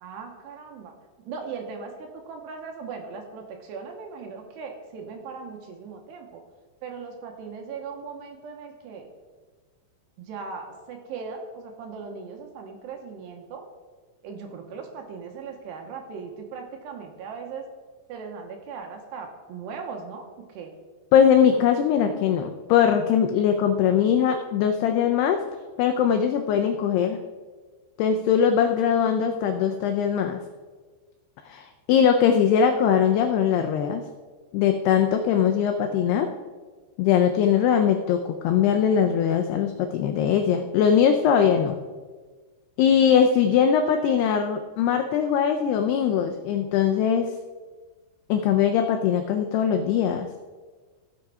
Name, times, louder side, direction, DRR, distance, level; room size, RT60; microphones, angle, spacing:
voice 1, 0.0-0.9 1.3-6.4 6.8-9.1 10.2-13.6 14.2-17.7 18.1-20.7, right 5 dB, 75° right, 3 dB, 3.0 m, -38 dB
voice 2, 21.1-25.5 25.8-27.2 28.0-30.4 31.5-34.0 34.5-36.3 37.0-41.8 42.8-47.3 48.3-50.3, left 8 dB, 90° left, 6 dB, 2.3 m, -21 dB
17.0 x 6.4 x 4.8 m, 1.4 s
omnidirectional pair, 5.4 m